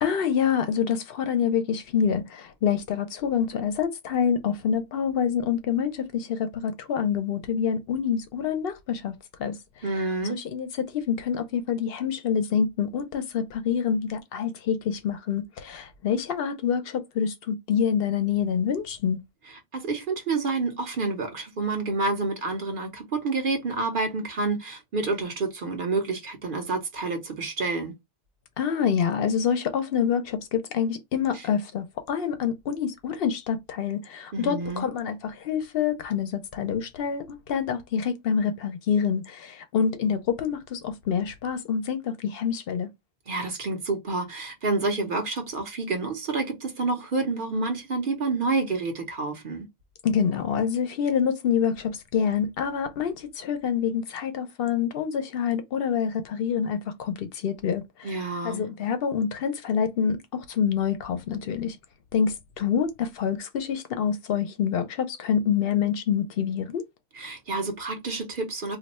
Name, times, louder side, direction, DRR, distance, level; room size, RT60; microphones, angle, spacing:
voice 1, 0.0-9.1 9.4-9.6 10.3-19.2 28.6-42.9 50.0-58.2 58.4-61.8 62.1-66.8, left 7 dB, 65° left, 0.8 m, -26 dB
voice 2, 9.8-10.4 19.7-27.9 31.3-31.4 34.3-34.9 43.3-49.7 58.0-58.7 67.2-68.8, right 3 dB, 55° right, 1.0 m, -28 dB
2.6 x 2.2 x 4.1 m
omnidirectional pair, 1.1 m